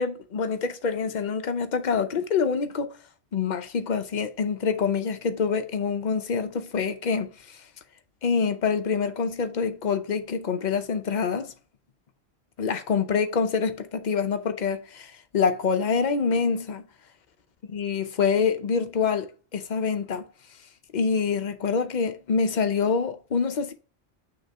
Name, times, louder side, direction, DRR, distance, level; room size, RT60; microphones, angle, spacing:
voice 1, 0.0-2.9 3.3-7.6 8.2-11.5 12.6-16.9 17.7-20.3 20.9-23.7, left 5 dB, 50° left, 0.7 m, -26 dB
6.3 x 2.9 x 5.4 m
omnidirectional pair, 1.1 m